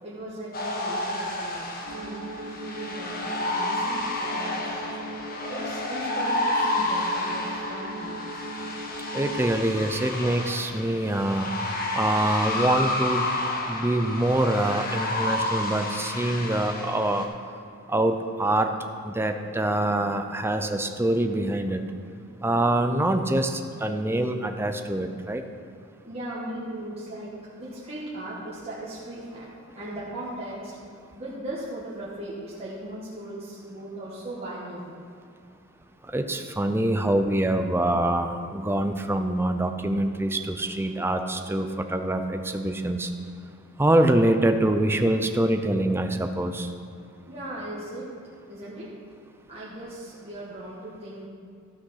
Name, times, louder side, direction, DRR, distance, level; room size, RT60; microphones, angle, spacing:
voice 1, 0.0-4.7 5.5-8.4 26.0-29.5 29.7-30.8 31.1-35.0 47.2-48.1 48.5-49.0 49.5-51.3, right 1 dB, 30° right, -8 dB, 1.5 m, -38 dB
sound 1, 0.5-17.2, left 2 dB, 40° left, 1.1 m, -30 dB
sound 2, 1.9-9.5, right 1 dB, 55° right, 0.6 m, -38 dB
voice 2, 9.1-11.5 12.0-13.2 13.7-17.2 17.9-18.7 19.0-21.8 22.4-25.4 36.1-43.1 43.8-46.7, right 1 dB, 10° right, 6 dB, 0.5 m, -25 dB
13.0 x 6.2 x 5.7 m, 2.4 s
head